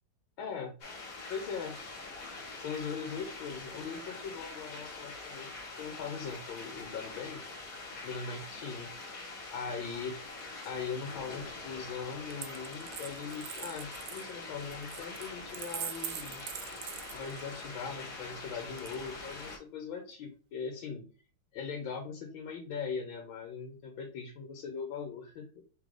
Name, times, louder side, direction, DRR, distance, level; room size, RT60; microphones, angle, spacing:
voice 1, 0.4-0.8 1.3-1.8 2.6-5.5 5.8-7.4 8.0-8.9 9.5-10.2 10.6-16.4 17.1-21.1 21.5-25.6, left 5 dB, 75° left, 2 dB, 1.5 m, -40 dB
sound 1, 0.8-19.6, left 3 dB, 50° left, 1.6 m, -44 dB
Coin (dropping), 12.3-17.7 18.8-19.5, right 10 dB, 75° right, 0.9 m, -43 dB
3.9 x 3.2 x 3.8 m, 0.38 s
omnidirectional pair, 2.2 m